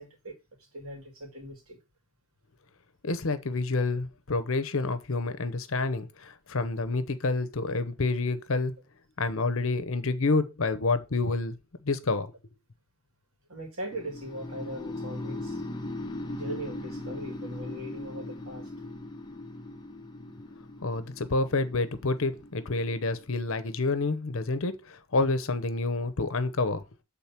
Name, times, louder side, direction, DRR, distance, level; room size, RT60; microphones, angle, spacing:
voice 1, 0.0-1.8 13.5-15.6 16.3-18.7, right 1 dB, 70° right, 2.5 m, -40 dB
voice 2, 3.0-8.7 9.2-11.6 11.8-12.3 20.8-26.8, left 3 dB, 65° left, 0.8 m, -28 dB
sound 1, 13.9-23.9, left 1 dB, 20° left, 0.8 m, -39 dB
7.2 x 3.9 x 5.9 m
head